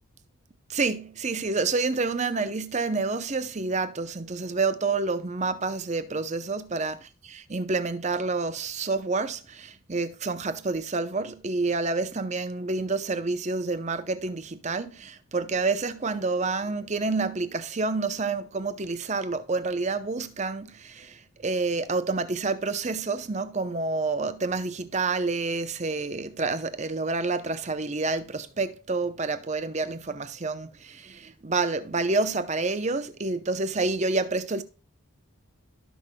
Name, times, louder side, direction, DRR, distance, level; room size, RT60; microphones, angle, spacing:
voice 1, 0.7-7.0 7.3-34.6, right 3 dB, 35° right, 0.6 m, -28 dB
16.5 x 5.9 x 2.2 m
head